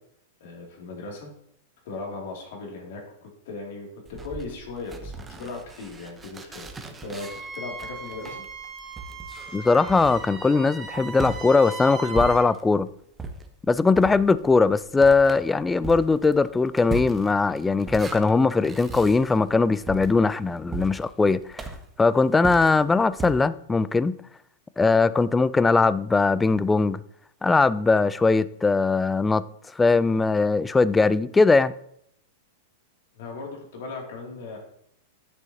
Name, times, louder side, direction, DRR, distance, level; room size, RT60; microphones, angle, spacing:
voice 1, 0.4-1.3 1.8-6.7 7.0-8.4 33.1-34.6, left 3 dB, 65° left, 2.6 m, -37 dB
sound 1, 4.1-12.8 13.2-23.3, right 2 dB, 15° right, 0.9 m, -38 dB
Wind instrument woodwind instrument, 7.2-12.5, right 4 dB, 35° right, 1.4 m, -38 dB
voice 2, 9.5-12.9 13.7-21.6 22.0-24.2 24.8-27.0 27.4-29.4 29.8-31.7, left 4 dB, 10° left, 0.3 m, -20 dB
10.5 x 6.2 x 2.8 m
hypercardioid pair, 105°, 0 cm